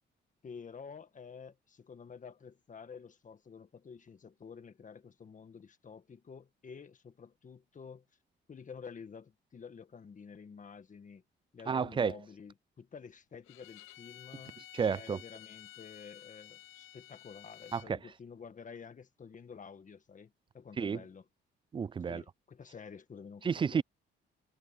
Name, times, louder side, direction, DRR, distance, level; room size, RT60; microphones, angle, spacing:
voice 1, 0.4-8.0 8.5-11.2 11.5-21.2 22.1-23.8, left 6 dB, 40° left, 1.7 m, -50 dB
voice 2, 11.7-12.1 14.7-15.2 17.7-18.0 20.8-21.0 21.7-22.2 23.4-23.8, right 6 dB, 25° right, 0.3 m, -31 dB
Bowed string instrument, 13.4-17.9, left 13 dB, 80° left, 0.9 m, -53 dB
cardioid pair, 90°, 20 cm